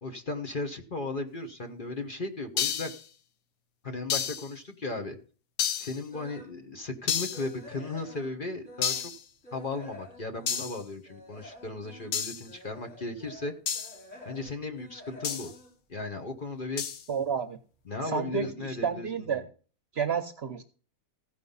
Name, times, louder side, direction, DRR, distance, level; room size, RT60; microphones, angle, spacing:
voice 1, 0.0-2.9 3.8-5.2 5.8-9.1 9.5-13.5 14.2-15.5 15.9-16.8 17.9-19.5, left 3 dB, 40° left, 6 dB, 1.2 m, -36 dB
sound 1, 2.6-3.0 4.1-4.5 5.6-6.0 7.1-7.5 8.8-9.2 10.5-10.8 12.1-12.5 13.7-14.0 15.2-15.5 16.8-17.0, left 8 dB, 75° left, 1.3 m, -30 dB
sound 2, 6.1-6.6 7.0-9.2 9.4-16.7 17.0-17.3 17.8-17.9 18.2-18.3, left 1 dB, 55° left, 6.8 m, -50 dB
voice 2, 17.1-17.6 18.0-19.4 19.9-20.6, right 6 dB, 50° right, 9 dB, 0.9 m, -30 dB
15.5 x 5.2 x 5.4 m, 0.39 s
omnidirectional pair, 1.5 m